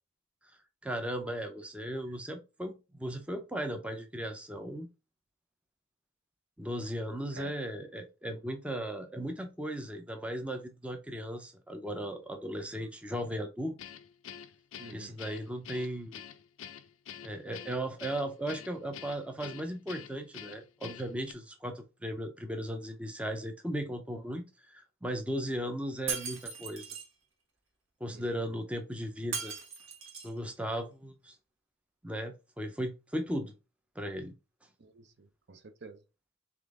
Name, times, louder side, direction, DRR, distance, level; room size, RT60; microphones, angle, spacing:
voice 1, 0.8-4.9 6.6-13.8 14.9-16.2 17.2-27.0 28.0-29.5 30.2-31.4 32.0-33.5 34.0-34.3, equal, 5° right, 0.5 m, -37 dB
Guitar, 13.8-21.3, left 9 dB, 70° left, 0.5 m, -47 dB
voice 2, 14.8-15.2 28.1-28.4 34.8-36.0, right 3 dB, 55° right, 0.6 m, -49 dB
Shatter, 26.1-27.1 29.3-30.4, right 5 dB, 80° right, 1.4 m, -38 dB
3.7 x 3.4 x 3.6 m
head